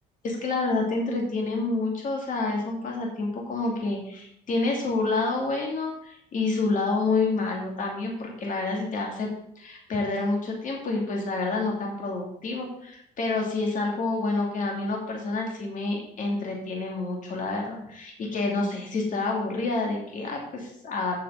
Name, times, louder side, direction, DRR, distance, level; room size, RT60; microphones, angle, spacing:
voice 1, 0.2-9.3 9.6-21.2, left 3 dB, 50° left, 0 dB, 2.7 m, -28 dB
7.7 x 7.1 x 6.8 m, 0.73 s
cardioid pair, 110°, 17 cm